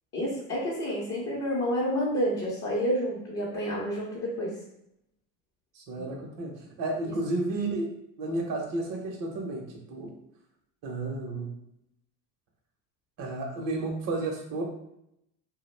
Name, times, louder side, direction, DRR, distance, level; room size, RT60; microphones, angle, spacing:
voice 1, 0.1-4.5, equal, 30° left, -5 dB, 0.6 m, -29 dB
voice 2, 5.7-6.5 6.8-9.6 9.9-10.1 10.8-11.5 13.2-14.6, right 2 dB, 40° right, 0 dB, 0.7 m, -32 dB
2.2 x 2.1 x 3.1 m, 0.79 s
supercardioid pair, 95°, 49 cm